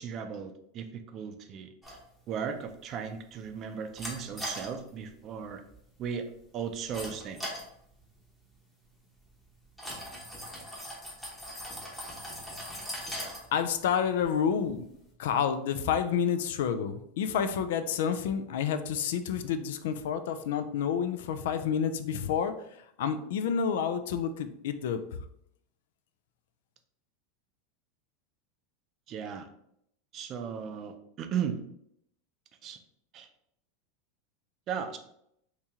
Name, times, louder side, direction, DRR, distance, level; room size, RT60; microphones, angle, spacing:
voice 1, 0.0-1.7 2.3-5.6 6.0-7.5 29.1-29.5 30.1-31.6 32.6-32.8 33.1-33.3 34.7-35.0, right 7 dB, 35° right, 7 dB, 0.4 m, -36 dB
sound 1, 1.8-15.1, equal, 5° left, 0.8 m, -43 dB
voice 2, 13.5-14.9 15.2-22.5 23.0-25.0, left 7 dB, 75° left, 10 dB, 0.4 m, -29 dB
2.9 x 2.8 x 3.6 m, 0.73 s
supercardioid pair, 135°, 0 cm